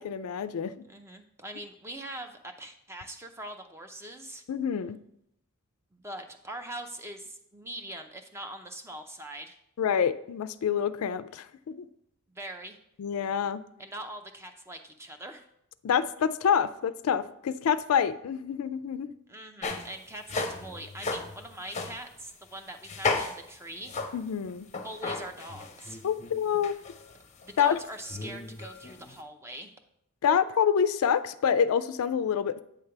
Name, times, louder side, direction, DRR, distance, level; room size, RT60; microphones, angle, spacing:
voice 1, 0.0-0.7 4.5-5.0 9.8-11.9 13.0-13.6 15.8-19.1 24.1-24.7 26.0-26.8 27.6-27.8 30.2-32.6, left 7 dB, 75° left, 14 dB, 0.3 m, -27 dB
voice 2, 0.9-4.4 5.9-9.6 12.3-12.8 13.8-15.5 19.3-23.9 24.8-26.0 27.4-29.7, right 1 dB, 10° right, 5 dB, 0.5 m, -42 dB
sound 1, 19.6-19.9 20.3-22.0 22.8-23.5 23.9-27.5 28.0-29.2, left 3 dB, 30° left, 0.6 m, -35 dB
8.5 x 3.3 x 5.7 m, 0.76 s
head